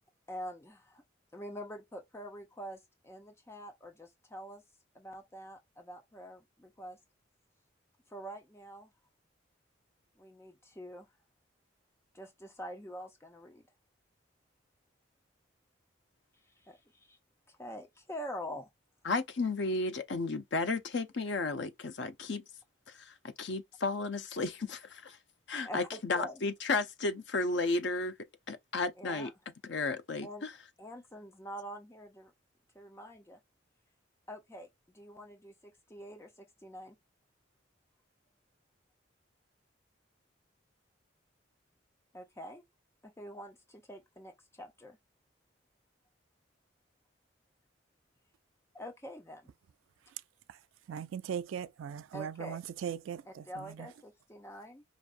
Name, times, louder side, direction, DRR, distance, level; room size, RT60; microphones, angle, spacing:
voice 1, 0.3-1.0 1.3-4.6 4.9-7.0 8.1-8.9 10.2-11.1 12.1-13.6 16.6-17.2 17.5-18.7 25.6-26.4 29.0-29.3 30.2-30.5 30.8-32.3 32.7-33.4 34.3-34.7 34.9-37.0 42.1-42.6 43.0-45.0 48.7-49.5 52.1-52.6 53.2-54.8, equal, 15° left, 0.7 m, -45 dB
voice 2, 19.0-22.4 22.9-25.2 25.5-28.1 28.5-29.3 29.6-30.5, left 3 dB, 65° left, 0.6 m, -33 dB
voice 3, 50.9-53.2, right 8 dB, 85° right, 0.3 m, -38 dB
5.0 x 2.6 x 2.5 m
head